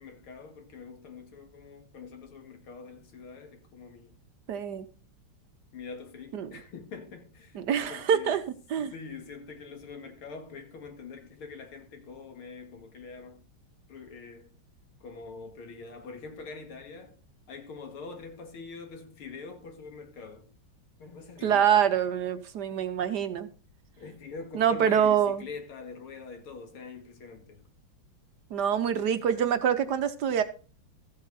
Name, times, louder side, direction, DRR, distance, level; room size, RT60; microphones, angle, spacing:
voice 1, 0.0-4.1 5.7-7.6 7.9-8.4 8.8-13.4 13.9-14.5 15.0-17.1 17.5-20.5 21.0-21.8 24.0-27.6, left 4 dB, 90° left, 2.7 m, -44 dB
voice 2, 4.5-4.9 6.3-6.5 7.5-8.4 8.7-8.9 21.4-23.5 24.5-25.5 28.5-30.4, right 8 dB, 65° right, 1.2 m, -25 dB
14.0 x 7.8 x 4.0 m
omnidirectional pair, 2.3 m